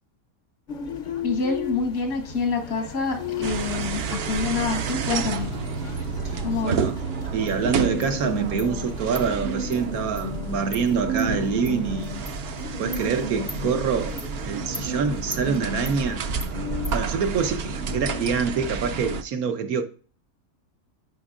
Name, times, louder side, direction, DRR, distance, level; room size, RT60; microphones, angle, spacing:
sound 1, 0.7-19.2, left 1 dB, 45° left, 0.6 m, -35 dB
voice 1, 1.2-5.5 6.4-6.8, left 4 dB, 75° left, 1.8 m, -27 dB
sound 2, 3.4-19.2, right 5 dB, 60° right, 0.7 m, -31 dB
voice 2, 6.2-7.0 7.3-12.2 12.8-16.2 16.9-19.8, right 6 dB, 90° right, 1.4 m, -26 dB
Insect, 7.5-7.6 8.0-8.1 8.6-8.7 9.1-9.3 9.7-9.8 10.2-10.3 10.7-10.8 11.2-11.3 11.6-11.7 12.2-12.4 12.9-13.0 13.5-13.6 14.2-14.3 14.7-14.9 15.3-15.4 15.8-16.0 16.4-16.5 16.8-17.0, left 1 dB, 5° left, 0.5 m, -38 dB
11.0 x 5.3 x 2.5 m
omnidirectional pair, 1.5 m